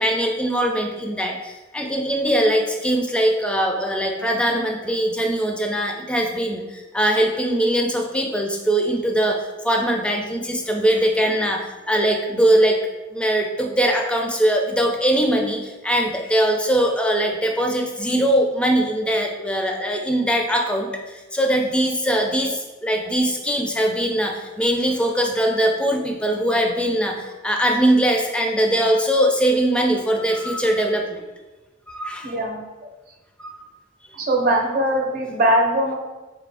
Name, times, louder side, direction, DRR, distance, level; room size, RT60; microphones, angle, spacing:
voice 1, 0.0-12.8 13.1-31.2 31.9-32.4 33.4-33.6, right 1 dB, 5° left, 2 dB, 0.4 m, -21 dB
voice 2, 32.2-32.6 34.1-35.9, right 1 dB, 45° right, 1 dB, 0.7 m, -20 dB
4.9 x 2.5 x 3.3 m, 1.2 s
head